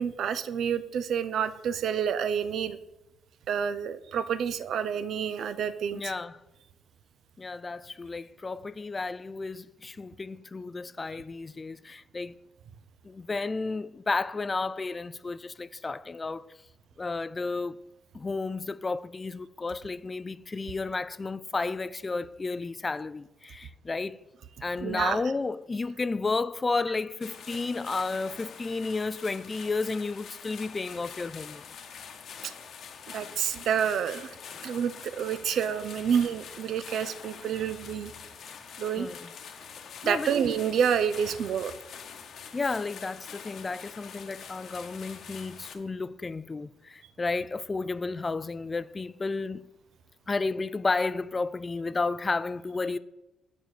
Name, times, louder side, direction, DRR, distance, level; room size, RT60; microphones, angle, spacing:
voice 1, 0.0-2.8 3.5-6.0 24.8-25.2 33.1-34.3 34.6-38.1 38.8-39.1 40.0-41.7, right 8 dB, 70° right, 0.5 m, -28 dB
voice 2, 5.9-6.4 7.4-12.4 13.0-16.5 17.0-17.8 18.1-24.2 24.6-31.6 39.0-39.3 40.0-40.3 42.5-49.7 50.3-53.0, left 3 dB, 25° left, 0.3 m, -32 dB
sound 1, 27.2-45.8, left 7 dB, 65° left, 0.9 m, -45 dB
6.7 x 4.6 x 6.7 m
cardioid pair, 90°, 0 cm